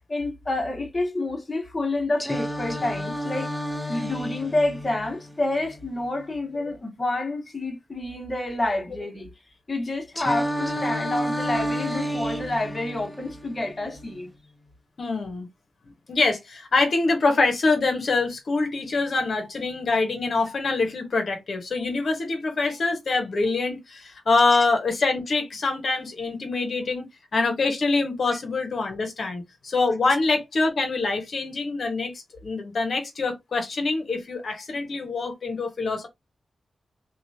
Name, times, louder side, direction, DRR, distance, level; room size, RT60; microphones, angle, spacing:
voice 1, 0.1-3.5 3.9-9.3 9.7-14.3, left 2 dB, 35° left, 1.4 m, -28 dB
Singing, 2.2-6.2 10.2-14.2, equal, 5° left, 0.7 m, -31 dB
voice 2, 15.0-15.5 16.1-27.0 27.3-36.1, left 3 dB, 65° left, 1.0 m, -25 dB
2.9 x 2.4 x 2.7 m
cardioid pair, 50°, 0 cm